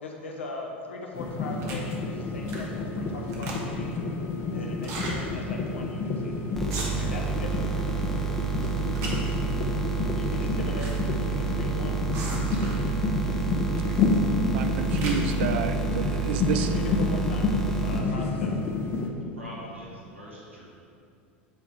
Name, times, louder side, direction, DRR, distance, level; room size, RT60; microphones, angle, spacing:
voice 1, 0.0-4.0 4.5-6.4 7.0-7.8 10.1-12.0 16.4-18.6, left 2 dB, 80° left, 1 dB, 0.9 m, -40 dB
sound 1, 1.1-19.1, left 3 dB, 40° left, 0.7 m, -29 dB
sound 2, 1.6-1.9 2.4-2.8 3.1-3.9 4.7-5.2 5.7-5.8 6.0-6.2 6.6-7.2 7.7-8.1 8.5-9.5 10.3-10.9 11.2-11.3 12.1-12.9 13.7-14.1 14.5-15.4, right 3 dB, 50° right, 1.3 m, -38 dB
sound 3, 6.5-18.0, right 6 dB, 5° left, 1.1 m, -30 dB
voice 2, 14.5-16.7, right 6 dB, 65° right, 8 dB, 0.5 m, -30 dB
voice 3, 19.3-20.7, equal, 85° right, -5 dB, 1.5 m, -43 dB
8.0 x 3.6 x 4.6 m, 2.5 s
figure-of-eight pair, 80°, 6 cm